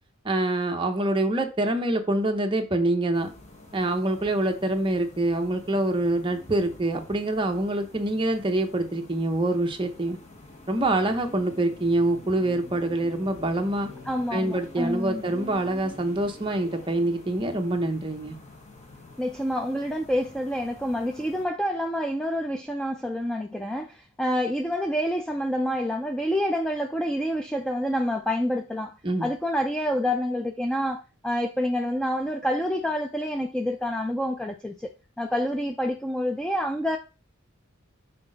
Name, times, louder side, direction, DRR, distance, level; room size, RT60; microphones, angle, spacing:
voice 1, 0.2-3.3 3.7-10.2 10.7-13.9 14.3-18.4 29.0-29.3, right 1 dB, 25° right, 0.8 m, -25 dB
sound 1, 3.1-21.5, left 2 dB, 35° left, 1.1 m, -47 dB
voice 2, 14.1-15.2 19.2-28.9 29.2-34.9 35.2-37.0, equal, 5° left, 0.3 m, -27 dB
6.0 x 4.1 x 3.8 m
head